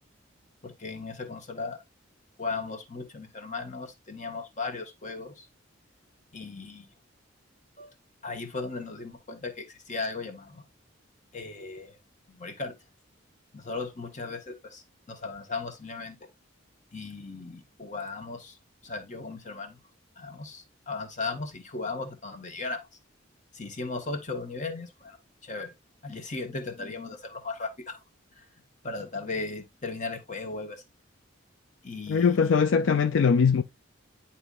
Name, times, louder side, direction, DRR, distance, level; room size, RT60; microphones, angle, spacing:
voice 1, 0.6-1.8 2.4-5.5 6.3-6.9 7.8-7.9 8.2-10.6 11.3-12.0 12.3-12.7 13.5-14.8 15.1-16.2 16.9-18.6 18.8-19.8 20.2-22.9 23.5-25.2 25.4-25.7 26.0-28.0 28.4-28.5 28.8-30.8 31.8-32.6, left 3 dB, 35° left, 1.1 m, -36 dB
voice 2, 32.1-33.6, left 6 dB, 65° left, 0.4 m, -21 dB
9.8 x 4.3 x 2.4 m
head